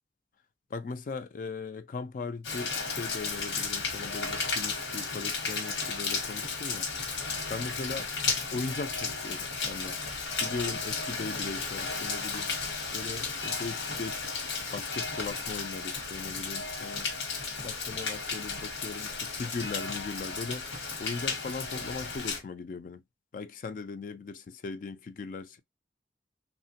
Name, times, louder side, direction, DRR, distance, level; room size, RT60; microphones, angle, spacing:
voice 1, 0.7-6.9 7.5-8.1 8.5-10.0 10.4-12.5 12.9-17.1 17.6-20.7 21.0-23.0 23.3-25.6, left 4 dB, 45° left, 0.3 m, -39 dB
Rain, 2.4-22.4, left 4 dB, 90° left, 1.0 m, -34 dB
3.1 x 2.1 x 2.7 m
head